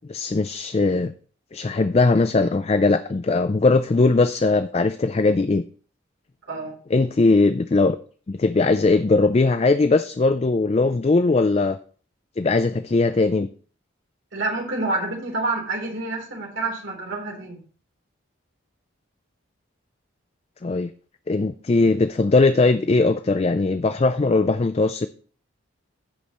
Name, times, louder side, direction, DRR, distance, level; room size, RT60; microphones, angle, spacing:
voice 1, 0.1-1.1 1.5-5.6 6.9-8.0 8.3-11.8 12.4-13.5 20.6-20.9 21.3-25.1, left 3 dB, 30° left, 11 dB, 0.3 m, -20 dB
voice 2, 14.3-17.6, right 2 dB, 65° right, -1 dB, 3.5 m, -28 dB
16.0 x 5.4 x 3.0 m, 0.43 s
head